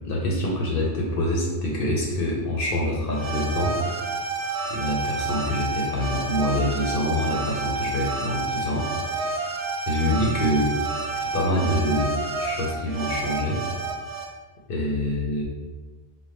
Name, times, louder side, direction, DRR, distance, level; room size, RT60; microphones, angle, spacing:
voice 1, 0.0-3.8 4.7-9.3 9.9-12.1 12.4-13.6 14.7-15.4, left 1 dB, 65° left, -3 dB, 0.8 m, -26 dB
sound 1, 3.1-14.2, right 3 dB, 45° right, 0.5 m, -29 dB
3.8 x 2.1 x 3.3 m, 1.3 s
omnidirectional pair, 1.0 m